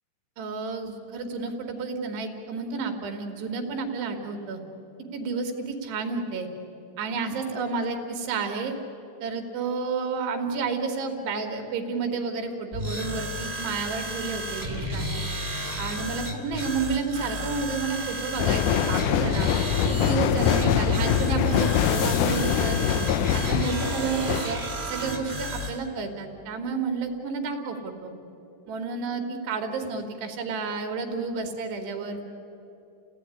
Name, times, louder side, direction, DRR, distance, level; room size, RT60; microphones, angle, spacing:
voice 1, 0.4-4.6 5.1-6.5 7.0-8.8 9.2-15.2 15.8-19.5 19.9-23.0 23.3-24.6 24.9-28.1 28.7-32.3, right 4 dB, 80° right, 4 dB, 4.2 m, -31 dB
sound 1, 12.7-25.8, equal, 15° right, 2.1 m, -33 dB
sound 2, 18.4-24.4, left 9 dB, 90° left, 1.7 m, -24 dB
29.5 x 17.0 x 9.9 m, 2.9 s
omnidirectional pair, 4.8 m